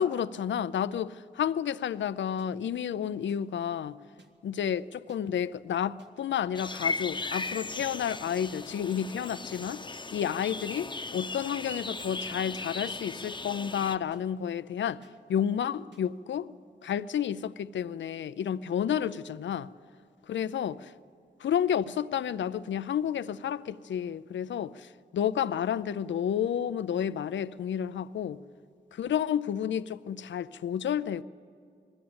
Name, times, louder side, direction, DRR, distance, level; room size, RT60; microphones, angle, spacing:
voice 1, 0.0-4.0 4.4-9.8 10.1-15.0 15.3-16.5 16.8-19.7 20.3-20.7 21.4-28.4 28.9-31.2, left 9 dB, 75° left, 14 dB, 0.5 m, -31 dB
sound 1, 2.4-2.5 3.3-3.4 4.2-4.3 5.1-5.2 6.0-6.1 6.9-7.0 7.8-7.9 8.7-8.8 9.6-9.7 10.5-10.6 11.4-11.5 12.3-12.4 13.2-13.3 14.1-14.2 15.0-15.1 15.9-16.0, right 4 dB, 70° right, 1.5 m, -55 dB
sound 2, 6.5-14.0, left 3 dB, 25° left, 0.9 m, -37 dB
20.5 x 14.5 x 8.7 m, 2.3 s
cardioid pair, 45°, 19 cm